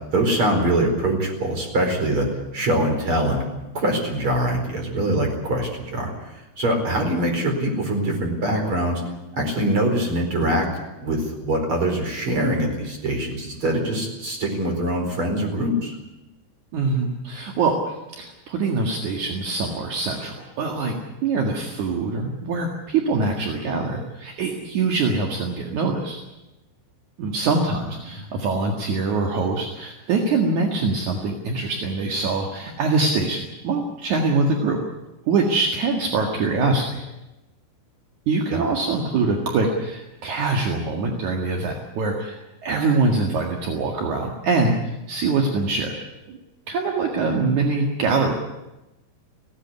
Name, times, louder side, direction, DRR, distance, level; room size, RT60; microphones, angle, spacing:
voice 1, 0.0-2.3 2.5-3.4 3.7-9.0 9.4-10.7 11.0-16.0 28.1-28.2 38.5-38.6, right 1 dB, 25° right, 3 dB, 4.9 m, -23 dB
voice 2, 16.7-26.2 27.2-34.8 35.3-37.0 38.3-45.9 46.3-46.4 46.7-48.3, right 3 dB, 55° right, 1 dB, 2.5 m, -24 dB
19.5 x 16.5 x 9.7 m, 0.99 s
omnidirectional pair, 5.7 m